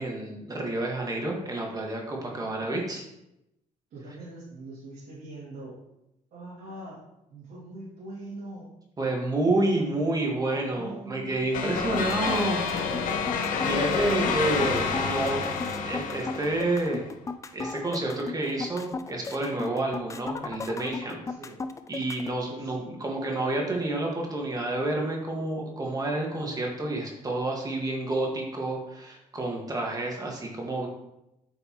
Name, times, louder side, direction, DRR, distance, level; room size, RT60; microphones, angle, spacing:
voice 1, 0.0-3.0 9.0-12.6 13.6-15.4 15.8-17.1 17.5-21.2 21.9-30.9, right 2 dB, 25° right, -1 dB, 1.7 m, -29 dB
voice 2, 2.2-2.8 3.9-5.8 6.3-7.0 7.3-8.7 10.7-12.2 21.3-21.6 22.5-22.9, right 2 dB, 80° right, -10 dB, 2.5 m, -43 dB
sound 1, 11.5-17.0, left 5 dB, 75° left, 0.9 m, -29 dB
sound 2, 11.8-22.4, left 4 dB, 20° left, 0.4 m, -36 dB
8.2 x 5.2 x 3.0 m, 0.86 s
cardioid pair, 105°, 14 cm